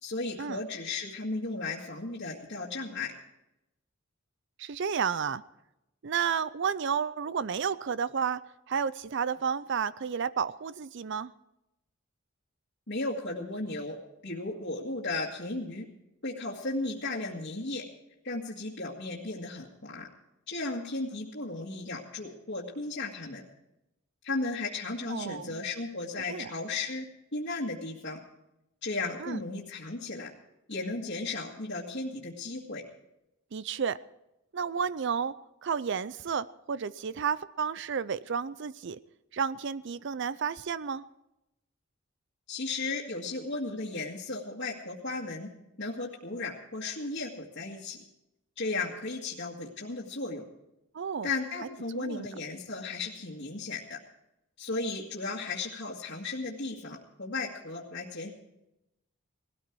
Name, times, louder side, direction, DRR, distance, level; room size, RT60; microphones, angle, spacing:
voice 1, 0.0-3.1 12.9-14.0 14.2-15.9 16.2-17.8 18.2-20.1 20.5-23.4 24.2-27.1 27.3-28.2 28.8-30.3 30.7-32.8 42.5-45.5 45.8-48.0 48.6-50.4 51.2-54.0 54.6-58.3, left 3 dB, 60° left, -5 dB, 2.1 m, -35 dB
voice 2, 4.6-5.4 6.0-8.4 8.7-11.3 25.1-25.6 26.3-26.5 29.2-29.4 33.5-34.0 34.5-35.4 35.6-39.0 39.3-41.0 50.9-51.3 51.9-52.3, right 6 dB, 60° right, 17 dB, 0.5 m, -31 dB
19.5 x 13.5 x 4.7 m, 0.88 s
head